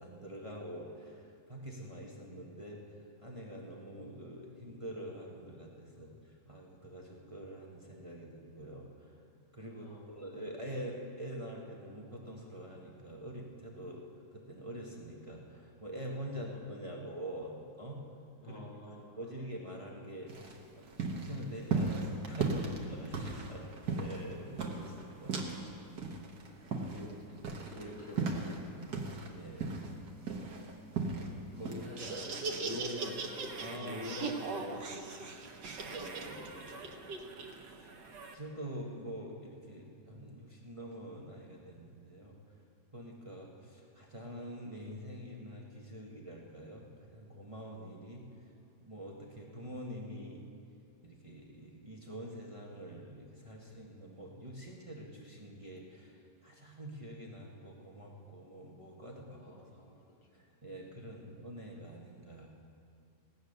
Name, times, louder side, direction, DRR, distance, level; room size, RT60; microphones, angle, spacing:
voice 1, 0.0-2.8 3.2-9.1 9.5-14.0 14.3-18.0 18.5-18.6 18.9-25.4 29.2-30.0 31.3-31.7 33.6-34.1 34.4-34.5 35.8-36.4 37.6-37.9 38.3-42.4 42.9-46.8 47.1-48.2 48.9-50.6 51.0-59.6 59.9-60.0 60.3-62.5, equal, 20° right, -2 dB, 1.3 m, -45 dB
voice 2, 9.8-10.2 18.4-19.2 23.5-23.7 26.7-29.0 31.5-35.6 35.9-37.2 42.5-42.6 59.4-59.9, left 1 dB, 80° left, -2 dB, 2.7 m, -47 dB
sound 1, 20.3-25.7 26.0-29.3 29.6-31.3 31.6-31.9, right 4 dB, 65° right, 1.9 m, -36 dB
Laughter, 31.8-38.3, right 4 dB, 90° right, 1.7 m, -40 dB
17.0 x 9.1 x 6.6 m, 2.4 s
omnidirectional pair, 1.8 m